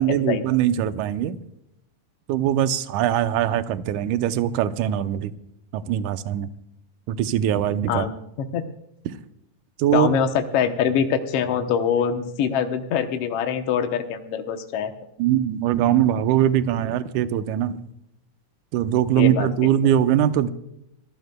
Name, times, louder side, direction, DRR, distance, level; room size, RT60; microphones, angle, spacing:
voice 1, 0.0-1.4 2.3-5.3 5.7-6.5 7.1-8.1 9.1-9.2 9.8-10.1 15.2-17.8 18.7-20.5, right 11 dB, 75° right, 10 dB, 2.1 m, -21 dB
voice 2, 9.9-14.9 19.2-19.5, left 7 dB, 70° left, 6 dB, 1.5 m, -24 dB
26.0 x 14.5 x 2.3 m, 0.81 s
omnidirectional pair, 3.8 m